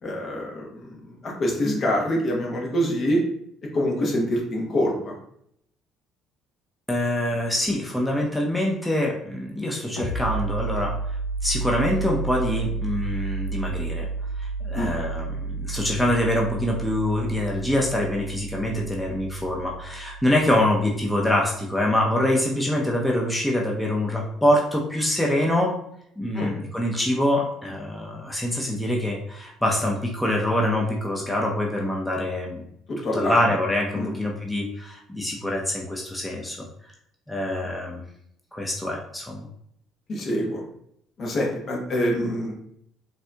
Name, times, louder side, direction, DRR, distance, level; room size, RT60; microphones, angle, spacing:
voice 1, 0.0-3.2 3.7-5.1 14.7-14.9 26.3-26.5 32.9-33.4 33.9-34.1 40.1-40.6 41.2-42.5, equal, 50° left, -1 dB, 1.1 m, -25 dB
voice 2, 6.9-14.1 14.4-25.7 26.2-32.6 33.1-36.7 37.3-38.0 38.5-39.5, left 1 dB, 5° left, -1 dB, 0.6 m, -25 dB
sound 1, 10.0-21.3, right 4 dB, 85° left, 0.8 m, -31 dB
4.1 x 2.7 x 2.3 m, 0.71 s
supercardioid pair, 75°, 0 cm